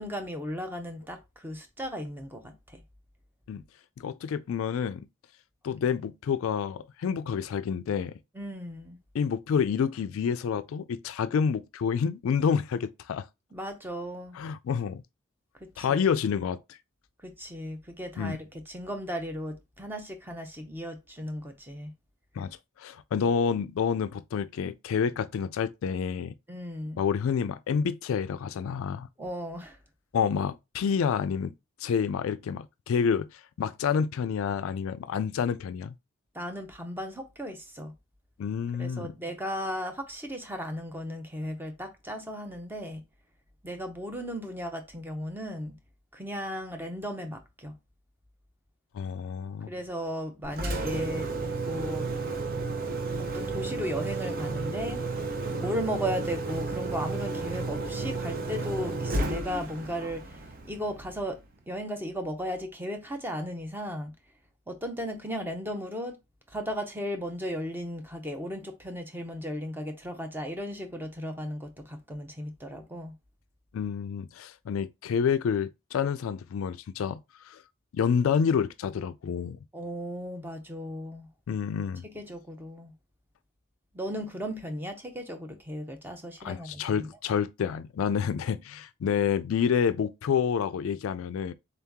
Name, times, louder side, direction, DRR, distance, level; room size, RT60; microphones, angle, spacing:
voice 1, 0.0-2.8 8.3-9.0 13.5-14.4 15.6-16.0 17.2-21.9 26.5-27.0 29.2-29.8 36.3-37.9 38.8-43.0 43.6-45.8 46.1-47.7 49.7-51.3 51.6-52.1 53.2-55.3 55.6-61.4 61.7-64.1 64.7-66.2 66.5-73.1 79.7-81.3 82.0-82.9 83.9-87.1, equal, 10° right, 0.7 m, -36 dB
voice 2, 4.0-5.1 5.6-8.2 9.1-13.3 14.3-15.0 15.8-16.8 18.2-18.4 22.4-26.4 27.0-29.1 30.1-31.5 31.8-35.9 38.4-39.1 48.9-49.7 73.7-77.6 77.9-79.6 81.5-82.0 86.4-91.5, left 7 dB, 70° left, 0.3 m, -28 dB
Engine, 50.4-61.4, right 3 dB, 45° right, 0.7 m, -32 dB
3.9 x 2.8 x 3.5 m
head